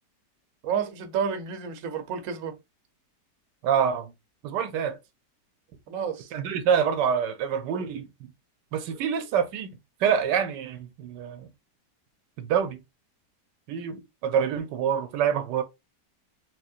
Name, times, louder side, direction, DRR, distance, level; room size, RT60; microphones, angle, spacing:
voice 1, 0.6-2.6 5.9-6.3, right 7 dB, 60° right, 1.0 m, -30 dB
voice 2, 3.6-4.1 4.4-5.0 6.3-8.1 8.7-11.5 12.4-12.8 13.7-15.6, right 8 dB, 90° right, 1.3 m, -26 dB
4.4 x 2.9 x 2.4 m
omnidirectional pair, 1.8 m